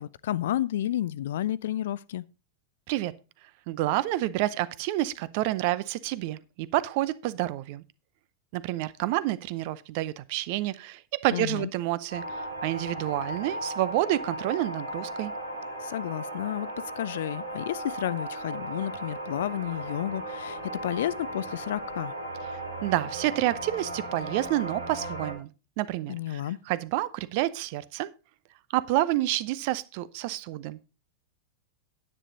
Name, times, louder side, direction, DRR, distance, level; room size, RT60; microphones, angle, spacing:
voice 1, 0.0-2.2 11.3-11.7 15.8-16.7 16.9-22.1 26.1-26.6, left 12 dB, 60° left, 0.4 m, -31 dB
voice 2, 3.7-7.8 8.5-15.3 22.8-25.5 25.8-26.4 26.7-28.1 28.7-30.9, right 16 dB, 45° right, 0.6 m, -29 dB
sound 1, 12.1-25.3, right 1 dB, 80° right, 3.5 m, -36 dB
10.0 x 8.4 x 4.0 m
figure-of-eight pair, 90°, 0 cm